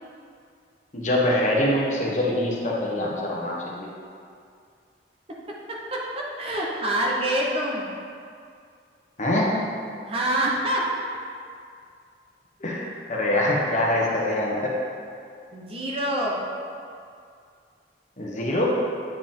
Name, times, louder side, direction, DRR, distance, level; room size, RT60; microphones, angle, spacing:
voice 1, 0.9-3.9 9.2-9.6 12.6-14.8 18.2-18.6, left 1 dB, 40° left, -3 dB, 1.1 m, -24 dB
voice 2, 5.7-7.9 10.1-10.9 15.5-16.4, right 1 dB, 30° right, -3 dB, 0.9 m, -26 dB
9.0 x 4.8 x 3.7 m, 2.3 s
head